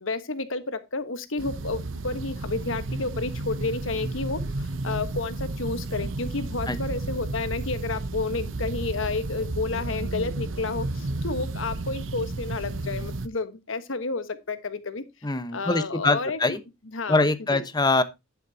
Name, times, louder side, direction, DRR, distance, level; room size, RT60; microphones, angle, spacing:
voice 1, 0.0-15.0 15.5-16.6 16.9-17.6, left 3 dB, 80° left, 1.3 m, -31 dB
sound 1, 1.4-13.3, right 2 dB, 75° right, 0.9 m, -32 dB
voice 2, 15.2-16.6 17.1-18.0, left 2 dB, 20° left, 1.0 m, -23 dB
11.0 x 8.4 x 2.8 m
head